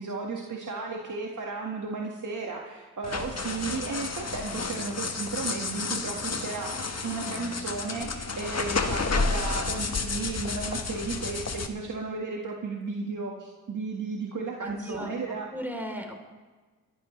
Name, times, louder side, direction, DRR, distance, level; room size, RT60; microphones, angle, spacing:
voice 1, 0.0-15.5, right 4 dB, 50° right, 0 dB, 1.8 m, -34 dB
sound 1, 3.0-11.7, left 4 dB, 40° left, 1.5 m, -31 dB
voice 2, 14.6-15.1 15.5-16.2, equal, 5° right, 3 dB, 3.5 m, -36 dB
23.5 x 12.0 x 3.3 m, 1.3 s
supercardioid pair, 45°, 39 cm